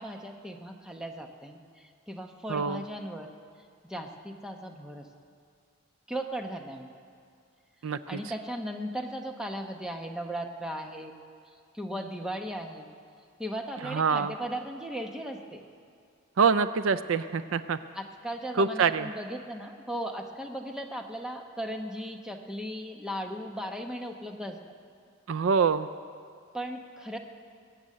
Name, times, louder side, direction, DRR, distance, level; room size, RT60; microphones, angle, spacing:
voice 1, 0.0-3.3 3.8-5.1 6.1-6.9 7.8-11.1 11.5-12.9 13.4-15.6 17.9-24.6 26.5-27.2, equal, 5° right, 3 dB, 1.0 m, -37 dB
voice 2, 2.5-2.8 7.8-8.0 13.8-14.3 16.4-17.8 18.6-19.1 25.3-25.9, right 5 dB, 70° right, 13 dB, 0.4 m, -25 dB
21.0 x 7.9 x 8.6 m, 2.2 s
head